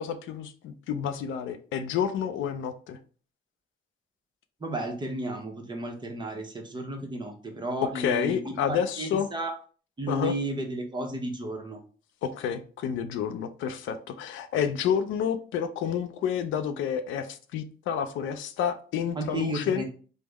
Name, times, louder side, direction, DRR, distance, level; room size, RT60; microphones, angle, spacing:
voice 1, 0.0-3.0 7.9-9.3 10.1-10.3 12.2-19.8, left 8 dB, 75° left, 0.4 m, -29 dB
voice 2, 4.6-9.5 10.0-11.8 19.2-19.8, right 1 dB, 20° right, 0.8 m, -33 dB
3.5 x 2.1 x 3.4 m
cardioid pair, 90°, 20 cm